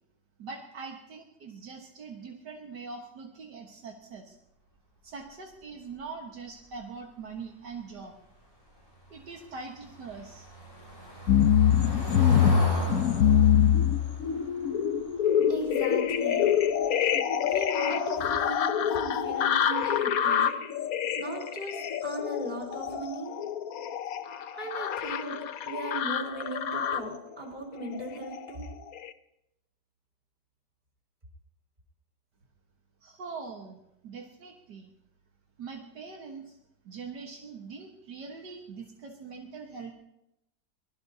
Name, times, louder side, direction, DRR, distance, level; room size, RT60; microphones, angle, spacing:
voice 1, 0.4-4.4 5.0-8.2 9.1-10.5 33.0-33.8 34.0-34.9 35.6-36.6 36.9-39.9, right 4 dB, 70° right, 1 dB, 2.0 m, -42 dB
Car passing by / Engine, 9.1-16.0 16.4-16.6 16.9-17.0, right 2 dB, 30° left, 6.7 m, -37 dB
sound 1, 11.3-27.2 27.8-28.5 29.0-29.1, left 9 dB, 60° left, 1.1 m, -25 dB
voice 2, 15.5-16.5 17.4-20.5 21.1-23.4 24.5-25.4 25.6-28.7, right 2 dB, 25° right, 0 dB, 4.9 m, -37 dB
24.0 x 21.0 x 2.8 m, 0.83 s
omnidirectional pair, 1.9 m